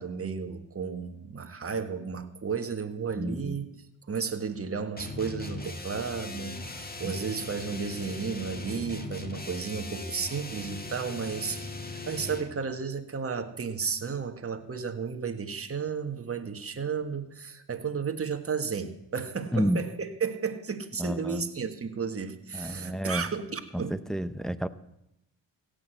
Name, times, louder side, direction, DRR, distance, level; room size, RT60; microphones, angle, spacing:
voice 1, 0.0-3.7 4.1-24.0, right 6 dB, 30° right, 6 dB, 1.5 m, -33 dB
voice 2, 3.2-3.6 7.0-7.2 19.5-19.8 21.0-21.5 22.5-23.3 23.7-24.7, equal, ahead, 12 dB, 0.6 m, -30 dB
sound 1, 5.0-12.6, left 2 dB, 20° left, 1.7 m, -39 dB
16.5 x 6.6 x 8.0 m, 0.84 s
cardioid pair, 70°, 46 cm